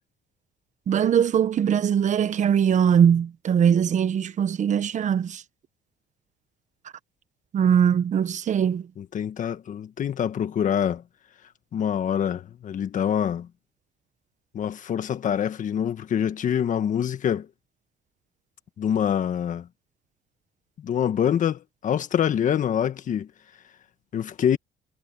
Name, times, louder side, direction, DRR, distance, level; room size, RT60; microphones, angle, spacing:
voice 1, 0.9-5.4 7.5-8.8, right 8 dB, 45° right, 1.2 m, -21 dB
voice 2, 9.0-11.0 11.7-13.5 14.5-17.5 18.8-19.7 20.8-23.3 24.1-24.6, left 9 dB, 50° left, 1.6 m, -25 dB
cardioid pair, 110°, 17 cm